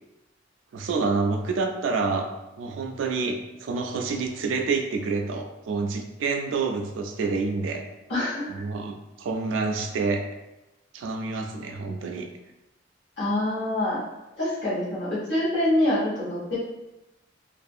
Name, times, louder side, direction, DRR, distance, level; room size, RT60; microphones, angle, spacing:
voice 1, 0.7-2.3 2.6-7.8 8.5-10.2 10.9-12.3, right 4 dB, 80° right, 4 dB, 0.3 m, -28 dB
voice 2, 8.1-8.5 13.2-14.0 14.4-16.6, left 1 dB, 65° left, -10 dB, 0.9 m, -25 dB
2.6 x 2.4 x 2.3 m, 0.96 s
head